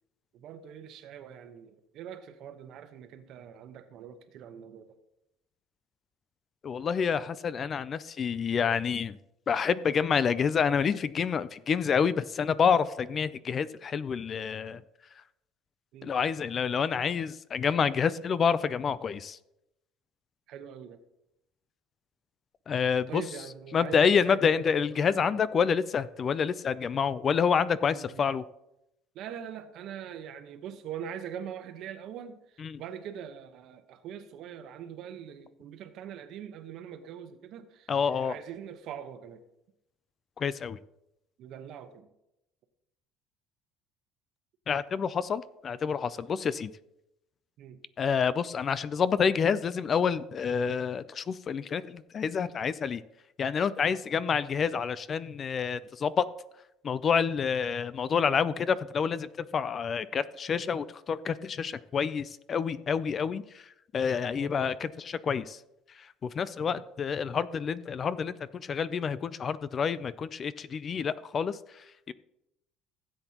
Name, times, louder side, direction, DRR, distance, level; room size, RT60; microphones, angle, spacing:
voice 1, 0.3-5.0 15.9-16.1 20.5-21.0 23.1-24.7 25.1-25.4 27.9-28.3 29.1-39.4 41.4-42.1 47.6-47.8 53.9-54.0 64.3-64.5 66.6-66.8, right 9 dB, 60° right, 9 dB, 1.0 m, -43 dB
voice 2, 6.6-9.2 9.5-14.8 16.0-19.4 22.7-23.2 23.7-28.4 32.6-32.8 37.9-38.3 40.4-40.8 44.7-46.7 48.0-53.0 53.4-56.3 56.8-63.6 63.9-65.6 66.0-72.1, left 6 dB, 30° left, 17 dB, 0.4 m, -28 dB
16.0 x 7.9 x 2.9 m, 0.86 s
cardioid pair, 140°, 0 cm